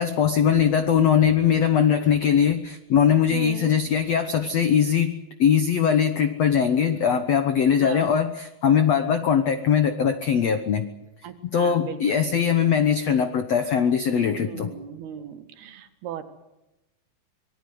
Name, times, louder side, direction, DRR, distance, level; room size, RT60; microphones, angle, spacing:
voice 1, 0.0-10.9 11.4-14.7, left 8 dB, 85° left, 9 dB, 1.4 m, -21 dB
voice 2, 3.3-3.7 7.8-8.1 11.2-12.7 14.4-16.2, right 10 dB, 70° right, 7 dB, 3.6 m, -37 dB
25.5 x 20.0 x 7.9 m, 0.96 s
omnidirectional pair, 4.8 m